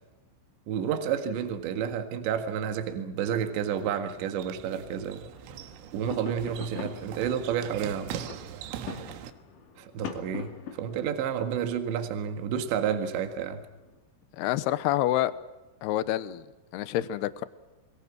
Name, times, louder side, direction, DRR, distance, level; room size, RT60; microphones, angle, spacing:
voice 1, 0.7-5.3 5.9-8.2 9.8-13.6, right 8 dB, 65° right, 6 dB, 3.8 m, -30 dB
sound 1, 3.7-9.3, right 9 dB, 90° right, 4.0 m, -42 dB
sound 2, 5.3-14.0, left 6 dB, 45° left, 3.4 m, -44 dB
voice 2, 14.4-15.3 15.8-16.5 16.7-17.4, left 14 dB, 80° left, 14 dB, 2.4 m, -27 dB
28.0 x 22.5 x 6.2 m, 1.1 s
omnidirectional pair, 5.9 m